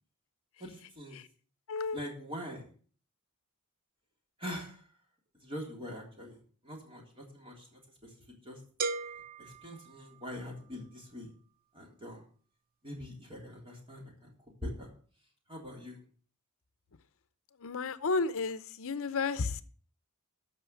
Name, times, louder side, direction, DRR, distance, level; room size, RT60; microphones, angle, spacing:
voice 1, 0.6-1.2 1.9-2.7 4.4-4.8 5.4-6.4 6.6-8.1 8.4-8.6 9.4-11.3 11.7-12.2 12.8-14.3 14.6-14.9 15.5-16.0, equal, 25° right, 0 dB, 3.4 m, -43 dB
voice 2, 1.7-2.0 17.6-19.6, left 4 dB, 65° left, 13 dB, 0.7 m, -32 dB
sound 1, 8.8-10.7, right 4 dB, 40° right, 0.7 m, -38 dB
13.0 x 5.7 x 6.9 m, 0.44 s
head